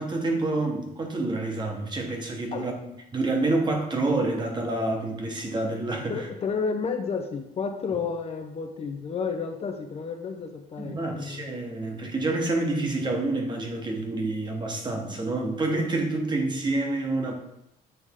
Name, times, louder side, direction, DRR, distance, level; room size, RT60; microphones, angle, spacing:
voice 1, 0.0-2.7 3.1-6.3 10.8-17.3, right 2 dB, 25° right, 2 dB, 1.2 m, -28 dB
voice 2, 6.1-11.6, left 5 dB, 40° left, 5 dB, 0.6 m, -31 dB
8.1 x 3.5 x 3.7 m, 0.84 s
cardioid pair, 110°, 17 cm